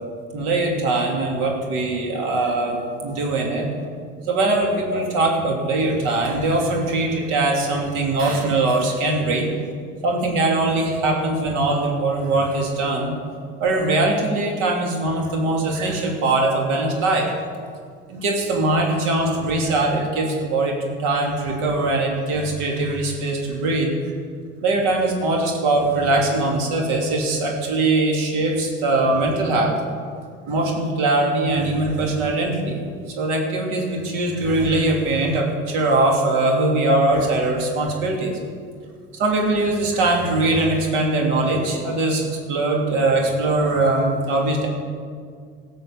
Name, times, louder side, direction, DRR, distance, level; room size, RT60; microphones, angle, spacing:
voice 1, 0.3-3.7 4.3-9.5 10.0-13.1 13.6-17.3 18.1-23.9 24.6-29.8 30.5-32.9 33.2-38.4 39.2-42.2 42.5-44.7, right 2 dB, 75° right, 0 dB, 3.1 m, -21 dB
17.5 x 6.3 x 7.3 m, 2.1 s
supercardioid pair, 80°, 31 cm